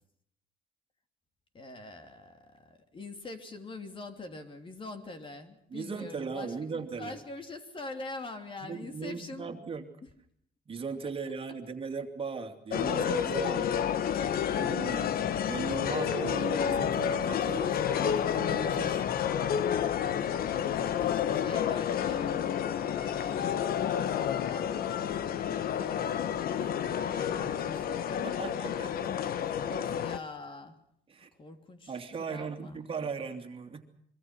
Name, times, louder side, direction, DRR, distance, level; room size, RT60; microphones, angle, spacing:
voice 1, 1.5-9.5 10.0-10.1 20.0-22.4 22.8-23.6 24.4-28.9 29.6-30.8 31.4-32.8, left 3 dB, 30° left, 7 dB, 3.1 m, -45 dB
voice 2, 5.7-7.1 8.6-9.9 10.7-13.7 14.5-15.1 15.4-19.1 28.2-29.2 31.1-31.3 31.9-33.8, right 5 dB, 35° right, 5 dB, 2.7 m, -38 dB
sound 1, 12.7-30.2, left 9 dB, 60° left, 1.3 m, -30 dB
25.0 x 24.0 x 6.0 m, 0.69 s
cardioid pair, 110°, 17 cm